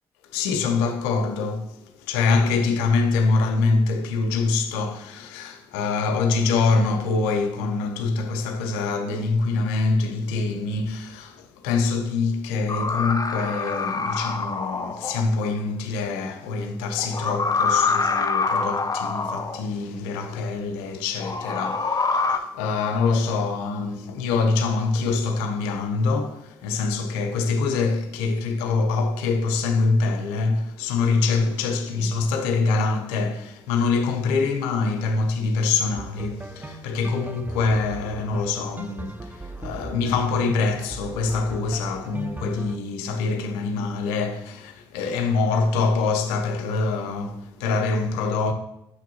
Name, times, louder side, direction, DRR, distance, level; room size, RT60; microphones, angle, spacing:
voice 1, 0.3-48.5, left 4 dB, 80° left, 0.7 m, -25 dB
sound 1, 12.7-15.2 17.0-19.6 21.2-22.4, left 4 dB, 30° left, 0.7 m, -25 dB
sound 2, 36.0-42.8, right 2 dB, 15° right, 0.6 m, -38 dB
7.8 x 5.9 x 3.0 m
hypercardioid pair, 40°, 13 cm